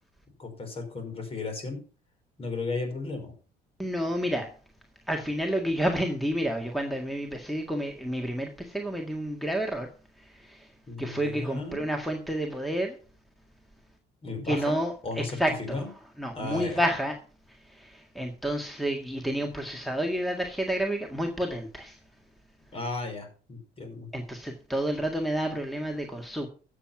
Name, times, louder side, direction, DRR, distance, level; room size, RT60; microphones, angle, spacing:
voice 1, 0.4-1.8 2.4-3.3 10.9-11.9 14.2-14.8 15.0-15.9 16.4-16.8 22.7-24.1, left 3 dB, 35° left, 4 dB, 5.5 m, -35 dB
voice 2, 3.8-4.5 5.1-9.9 10.4-10.7 11.0-12.9 14.5-14.9 15.4-15.8 16.2-17.1 17.7-22.0 24.1-26.5, equal, ahead, 3 dB, 1.8 m, -30 dB
12.5 x 7.6 x 5.9 m, 0.37 s
cardioid pair, 110°, 17 cm